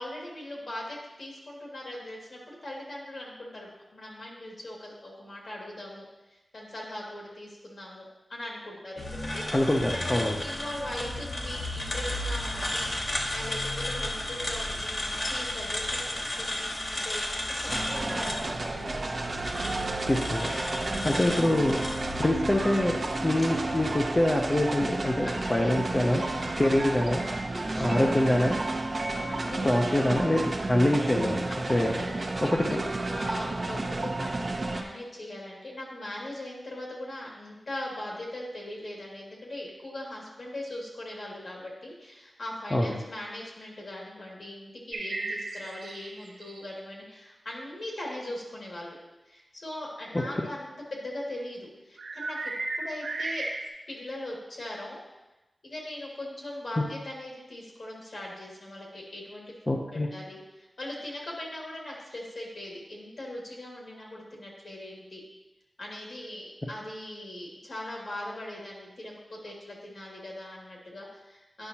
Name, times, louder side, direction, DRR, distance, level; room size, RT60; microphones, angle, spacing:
voice 1, 0.0-6.0 6.3-9.4 9.9-16.1 16.3-19.4 25.2-25.8 26.2-26.7 27.2-28.5 29.3-30.1 31.5-49.0 49.3-53.5 53.9-55.0 55.6-65.2 65.8-71.7, left 1 dB, 65° left, -3 dB, 2.3 m, -40 dB
sound 1, 9.0-23.9, left 1 dB, 40° left, 1.0 m, -34 dB
voice 2, 9.5-10.4 20.1-20.5 21.0-21.8 22.2-26.2 26.6-27.2 27.8-28.5 29.6-31.4 31.7-32.0 32.4-32.8 42.7-43.0 50.1-50.2 56.8-56.9 59.7-60.1, left 1 dB, 25° left, -1 dB, 0.7 m, -25 dB
sound 2, 17.7-34.8, right 2 dB, 50° right, 0.7 m, -32 dB
sound 3, 44.9-46.7 52.0-53.7, right 2 dB, 85° right, 0.7 m, -35 dB
9.9 x 5.7 x 2.9 m, 1.0 s
wide cardioid pair, 85°, 0 cm